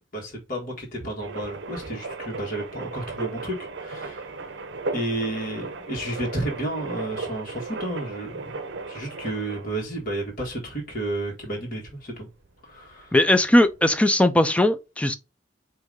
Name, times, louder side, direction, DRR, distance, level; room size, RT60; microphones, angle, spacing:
voice 1, 0.1-4.6 4.9-8.5 8.9-12.3 12.6-13.1, right 1 dB, 50° left, 1.5 m, -32 dB
sound 1, 1.2-12.1 12.4-12.5 12.7-13.9, right 3 dB, 65° right, 0.6 m, -36 dB
voice 2, 13.1-15.2, left 1 dB, 5° left, 0.4 m, -19 dB
4.8 x 2.7 x 3.7 m
head